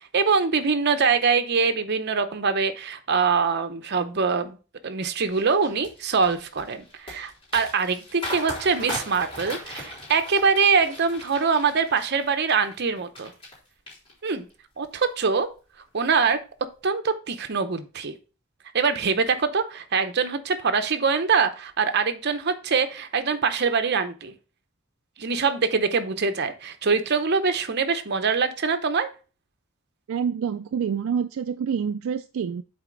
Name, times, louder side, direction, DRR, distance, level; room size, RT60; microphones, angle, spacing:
voice 1, 0.1-4.6 4.8-13.3 14.2-14.5 14.8-15.5 15.9-16.4 16.8-18.1 18.7-24.3 25.2-29.1, right 5 dB, 55° right, 9 dB, 0.8 m, -23 dB
sound 1, 5.3-13.6 13.9-14.5 14.9-15.2, left 1 dB, 25° left, 3.6 m, -38 dB
voice 2, 30.1-32.6, right 7 dB, 75° right, 10 dB, 0.3 m, -27 dB
7.9 x 4.2 x 3.9 m, 0.35 s
head